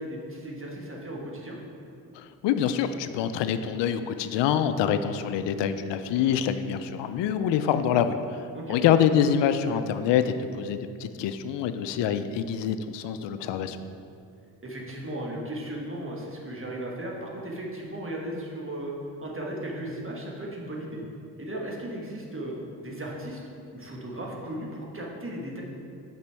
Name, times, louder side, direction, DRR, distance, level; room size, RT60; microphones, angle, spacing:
voice 1, 0.0-1.6 8.5-8.8 14.6-18.9 19.2-21.0 21.4-23.4 23.7-25.6, right 1 dB, 25° right, -2 dB, 1.4 m, -36 dB
voice 2, 2.1-13.8, left 8 dB, 65° left, 10 dB, 0.5 m, -26 dB
6.7 x 5.1 x 3.4 m, 2.5 s
supercardioid pair, 50°, 47 cm